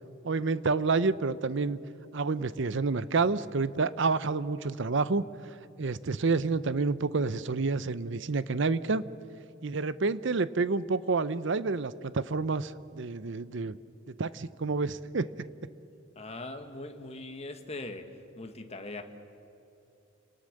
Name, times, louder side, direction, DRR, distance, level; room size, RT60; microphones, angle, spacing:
voice 1, 0.2-1.8 2.1-5.2 5.8-9.0 9.6-13.8 14.2-15.5, right 4 dB, 65° right, 16 dB, 0.7 m, -29 dB
voice 2, 16.1-18.1 18.3-19.0, left 2 dB, 30° left, 6 dB, 1.6 m, -40 dB
28.5 x 19.0 x 6.6 m, 2.8 s
head